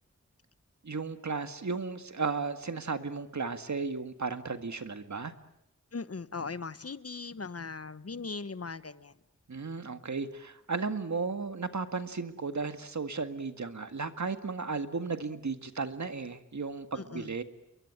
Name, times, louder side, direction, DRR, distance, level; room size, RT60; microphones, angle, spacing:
voice 1, 0.8-5.3 9.5-17.4, right 4 dB, 70° right, 9 dB, 1.9 m, -35 dB
voice 2, 5.9-9.1 17.0-17.3, left 4 dB, 55° left, 15 dB, 1.2 m, -39 dB
29.5 x 22.5 x 8.9 m, 0.80 s
wide cardioid pair, 70°, 29 cm